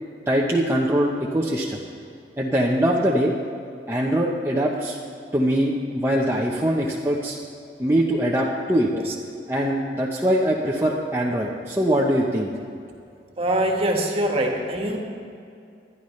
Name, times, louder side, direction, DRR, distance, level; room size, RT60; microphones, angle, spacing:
voice 1, 0.3-1.8 2.4-3.3 3.9-5.0 5.3-7.4 7.8-8.9 9.5-12.5, equal, 15° right, -3 dB, 0.9 m, -22 dB
voice 2, 13.4-15.0, right 1 dB, 35° right, 1 dB, 1.7 m, -23 dB
20.0 x 12.0 x 3.2 m, 2.5 s
head